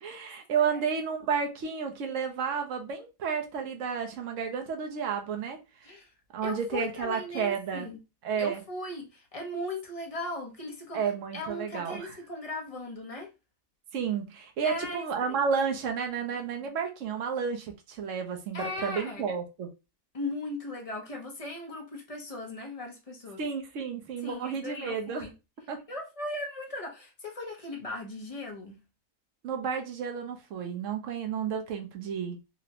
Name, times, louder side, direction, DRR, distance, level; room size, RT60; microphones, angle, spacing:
voice 1, 0.0-5.6 6.3-7.9 8.2-8.6 10.9-12.2 13.9-19.7 23.4-25.2 25.7-25.8 29.4-32.4, right 6 dB, 65° right, 1.0 m, -31 dB
voice 2, 6.4-8.0 8.4-11.0 11.3-13.3 14.6-15.4 18.5-19.3 20.1-23.4 24.2-25.3 25.9-28.8, left 2 dB, 35° left, 0.6 m, -38 dB
4.0 x 2.1 x 2.8 m
omnidirectional pair, 1.5 m